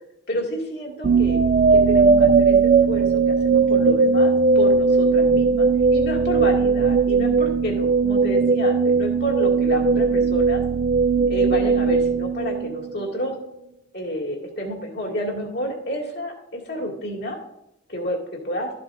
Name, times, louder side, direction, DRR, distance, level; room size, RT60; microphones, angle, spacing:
voice 1, 0.3-1.4 1.7-10.6 11.3-13.3 13.9-17.4 17.9-18.2 18.4-18.7, equal, 55° left, 0 dB, 2.3 m, -30 dB
sound 1, 1.0-13.1, right 4 dB, 40° right, 0.3 m, -18 dB
13.0 x 7.7 x 2.6 m, 0.82 s
head